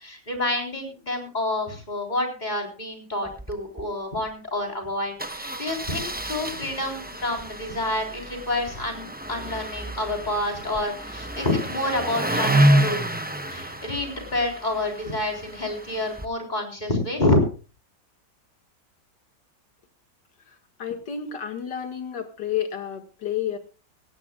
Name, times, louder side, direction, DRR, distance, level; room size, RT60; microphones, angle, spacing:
voice 1, 0.0-13.1 13.5-17.4, left 1 dB, 25° left, 2 dB, 4.0 m, -28 dB
Engine starting, 3.3-3.5 3.8-3.9 4.1-4.3 5.2-16.3, right 1 dB, 15° right, 0.3 m, -28 dB
voice 2, 20.5-23.6, left 9 dB, 75° left, 6 dB, 2.4 m, -31 dB
17.5 x 16.5 x 2.4 m, 0.35 s
omnidirectional pair, 1.9 m